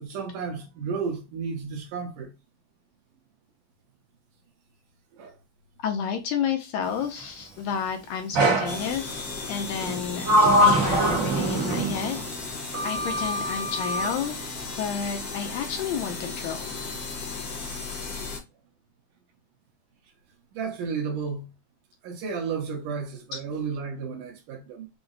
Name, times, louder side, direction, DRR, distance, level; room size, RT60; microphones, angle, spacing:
voice 1, 0.0-2.3 5.2-5.4 20.5-21.5 22.0-24.9, right 5 dB, 85° right, 2.7 m, -32 dB
voice 2, 5.8-9.1 9.5-10.3 10.5-12.2 12.8-14.4 14.7-16.8 23.3-23.4, left 7 dB, 75° left, 1.7 m, -30 dB
Sliding door, 8.3-8.8 9.8-12.2 12.7-14.1, right 1 dB, 70° right, 0.7 m, -23 dB
sound 1, 8.7-18.4, left 4 dB, 55° left, 1.0 m, -35 dB
5.9 x 2.1 x 3.8 m
omnidirectional pair, 3.6 m